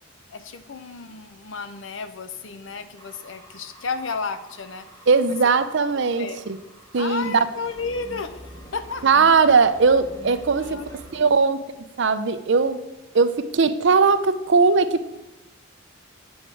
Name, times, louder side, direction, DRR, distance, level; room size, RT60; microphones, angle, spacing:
voice 1, 0.3-4.9 5.9-6.4 7.0-8.5 8.7-9.1 10.6-10.9 11.1-11.3, left 4 dB, 65° left, 11 dB, 0.6 m, -33 dB
sound 1, 3.0-11.2, left 1 dB, 15° left, 1.8 m, -46 dB
voice 2, 5.1-6.6 6.9-7.5 9.0-10.8 11.1-11.6 12.0-12.8 13.1-15.1, right 4 dB, 60° right, 11 dB, 0.6 m, -19 dB
8.7 x 7.3 x 4.6 m, 1.0 s
head